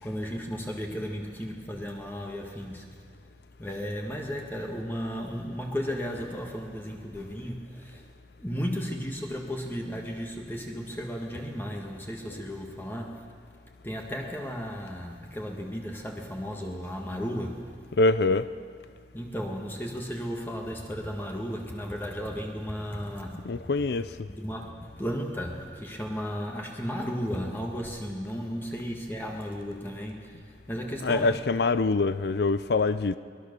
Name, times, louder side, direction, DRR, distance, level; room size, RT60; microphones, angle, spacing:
voice 1, 0.0-2.8 3.6-8.0 8.4-13.2 13.8-17.7 19.1-23.4 24.3-30.4 30.7-31.4, equal, 10° left, 1.7 m, -34 dB
voice 2, 18.0-18.5 23.4-24.1 31.0-33.2, left 3 dB, 65° left, 0.5 m, -24 dB
23.5 x 20.0 x 6.8 m
head